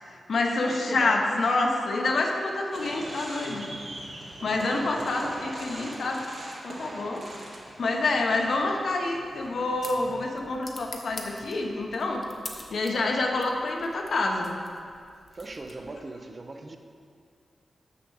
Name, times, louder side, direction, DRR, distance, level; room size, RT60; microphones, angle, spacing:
voice 1, 0.1-3.7 4.4-6.2 6.6-7.2 7.8-12.2 12.7-14.5, left 2 dB, 70° left, 1 dB, 1.1 m, -27 dB
voice 2, 0.6-1.2 4.7-5.4 15.3-16.8, right 2 dB, 40° right, 5 dB, 0.8 m, -40 dB
sound 1, 2.7-10.4, right 1 dB, 60° right, 1.8 m, -42 dB
sound 2, 9.2-16.1, left 2 dB, 40° left, 1.1 m, -46 dB
6.9 x 6.9 x 6.5 m, 2.2 s
wide cardioid pair, 90°, 0 cm